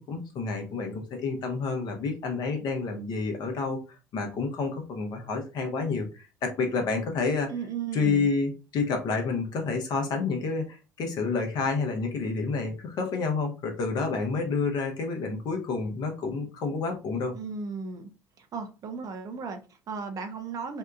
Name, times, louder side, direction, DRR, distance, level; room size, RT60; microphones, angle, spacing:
voice 1, 0.0-3.8 4.1-7.5 7.9-17.3, left 4 dB, 50° left, 0.8 m, -29 dB
voice 2, 7.5-8.3 17.3-18.1 18.4-20.8, right 5 dB, 40° right, 0.5 m, -35 dB
2.7 x 2.3 x 2.3 m
figure-of-eight pair, 55°, 9 cm